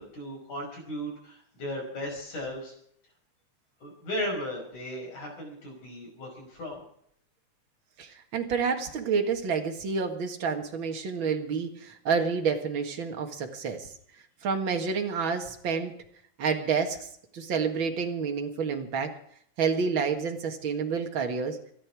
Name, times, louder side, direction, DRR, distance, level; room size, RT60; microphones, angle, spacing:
voice 1, 0.0-2.7 3.8-6.8, equal, 70° left, -1 dB, 6.7 m, -36 dB
voice 2, 8.0-13.9 14.4-15.9 16.4-17.1 17.3-19.1 19.6-21.6, right 5 dB, 45° right, 4 dB, 2.2 m, -29 dB
25.0 x 10.0 x 4.9 m, 0.65 s
omnidirectional pair, 3.5 m